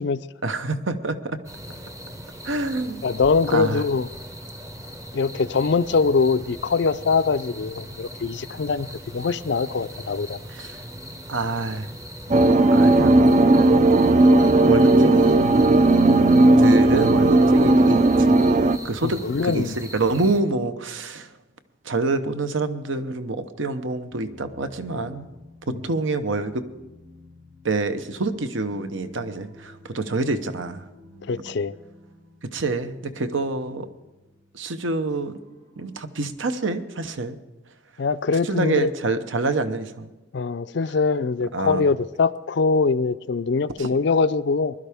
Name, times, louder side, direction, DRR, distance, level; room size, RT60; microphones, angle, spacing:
voice 1, 0.4-1.4 2.4-3.0 3.5-3.8 10.5-10.8 11.3-11.9 12.7-13.7 14.6-16.0 16.6-18.5 18.8-21.3 21.8-25.3 25.7-26.7 27.6-30.8 32.4-33.9 34.5-35.4 35.8-37.4 38.4-40.1 41.5-41.8 43.8-43.9, right 3 dB, 70° right, 0.9 m, -27 dB
sound 1, 1.4-20.4, equal, 15° right, 0.7 m, -40 dB
voice 2, 3.0-4.1 5.1-8.9 9.1-10.4 12.3-12.4 19.0-19.8 25.7-25.8 31.3-31.7 38.0-38.9 40.3-44.7, left 4 dB, 55° left, 0.4 m, -23 dB
sound 2, 12.3-18.8, right 2 dB, 35° right, 0.3 m, -16 dB
sound 3, 24.1-36.6, left 1 dB, 90° right, 5.6 m, -49 dB
20.5 x 12.0 x 3.5 m
head